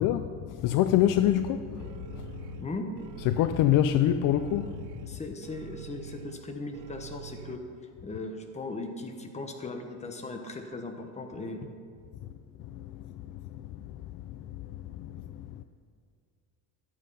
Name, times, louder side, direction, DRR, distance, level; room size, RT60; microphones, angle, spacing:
voice 1, 0.0-2.6 3.3-4.9 12.6-14.2 14.5-15.6, left 11 dB, 55° left, 10 dB, 0.5 m, -27 dB
sound 1, 1.8-7.6, right 9 dB, 90° right, 0.7 m, -45 dB
voice 2, 5.1-7.6 8.0-11.7, left 3 dB, 15° left, 4 dB, 1.1 m, -38 dB
11.5 x 8.5 x 5.5 m, 2.2 s
cardioid pair, 140°, 39 cm